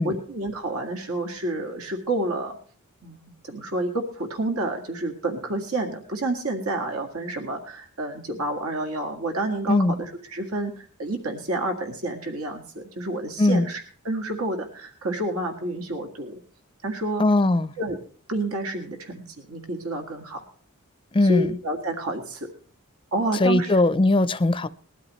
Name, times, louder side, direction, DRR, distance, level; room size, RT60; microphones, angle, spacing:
voice 1, 0.0-2.6 3.0-16.4 16.8-17.2 17.8-18.0 18.3-20.4 21.2-22.5 23.1-23.7, right 1 dB, 80° right, 1.9 m, -29 dB
voice 2, 17.2-17.7 21.1-21.6 23.4-24.7, left 2 dB, 25° left, 0.5 m, -20 dB
20.0 x 13.0 x 3.1 m
head